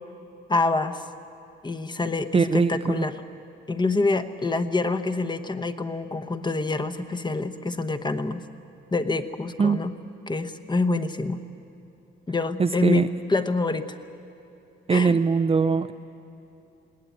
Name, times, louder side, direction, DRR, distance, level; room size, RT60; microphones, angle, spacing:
voice 1, 0.5-1.0 1.6-3.1 3.7-8.4 8.9-9.9 10.3-11.4 12.3-14.0 14.9-15.2, left 3 dB, 20° left, 9 dB, 1.1 m, -26 dB
voice 2, 2.3-3.0 9.6-9.8 12.6-13.1 14.9-15.9, right 5 dB, 30° right, 10 dB, 0.6 m, -21 dB
21.0 x 17.5 x 9.1 m, 2.9 s
cardioid pair, 90°, 20 cm